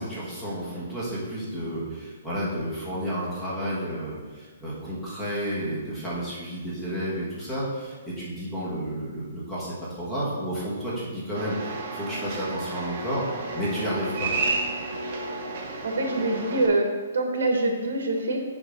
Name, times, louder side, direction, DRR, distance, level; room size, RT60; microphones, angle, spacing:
voice 1, 0.0-13.2 13.5-14.3, equal, 5° left, -8 dB, 1.4 m, -31 dB
sound 1, 11.3-16.7, right 2 dB, 35° right, 0.9 m, -31 dB
voice 2, 15.6-16.9 17.1-18.4, right 2 dB, 80° right, 2 dB, 1.3 m, -25 dB
7.8 x 3.6 x 5.2 m, 1.4 s
hypercardioid pair, 175°, 0 cm